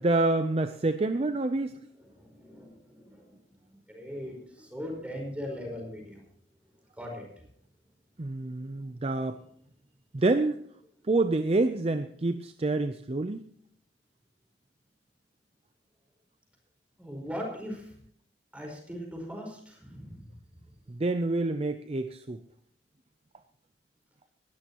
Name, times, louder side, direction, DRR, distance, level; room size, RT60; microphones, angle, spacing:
voice 1, 0.0-1.8 8.2-9.4 10.1-10.5 11.1-13.4 20.9-22.4, right 2 dB, 35° right, 9 dB, 0.5 m, -27 dB
voice 2, 2.2-3.3 3.9-6.2 7.0-7.3 17.0-17.8 18.5-20.2, equal, 5° right, 0 dB, 5.0 m, -39 dB
19.0 x 13.0 x 3.0 m, 0.65 s
head